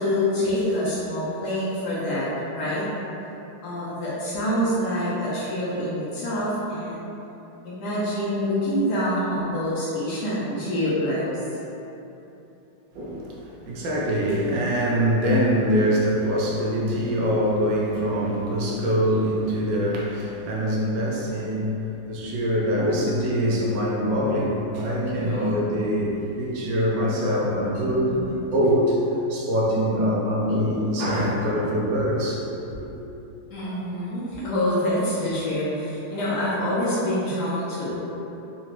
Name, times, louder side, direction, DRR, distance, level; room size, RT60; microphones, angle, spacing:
voice 1, 0.0-2.8 3.6-7.1 7.6-11.4 25.1-25.5 27.7-28.2 33.5-38.0, left 1 dB, 65° left, -9 dB, 1.1 m, -26 dB
voice 2, 12.9-28.2 28.5-29.0 29.3-32.9, equal, 80° right, -4 dB, 1.3 m, -24 dB
3.9 x 2.3 x 3.0 m, 3.0 s
omnidirectional pair, 2.1 m